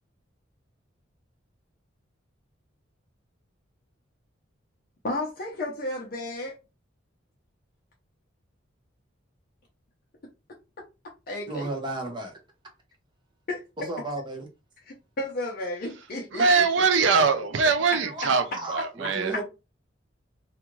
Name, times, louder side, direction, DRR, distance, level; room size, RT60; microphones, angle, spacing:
voice 1, 5.0-6.6 11.3-11.7 13.5-13.6 14.9-16.4, left 1 dB, 50° left, 0.6 m, -32 dB
voice 2, 11.5-12.4 13.8-14.5 18.0-18.2 18.6-19.4, right 2 dB, 25° right, 0.7 m, -33 dB
voice 3, 16.3-19.3, right 4 dB, 70° right, 0.5 m, -22 dB
2.5 x 2.4 x 3.0 m
head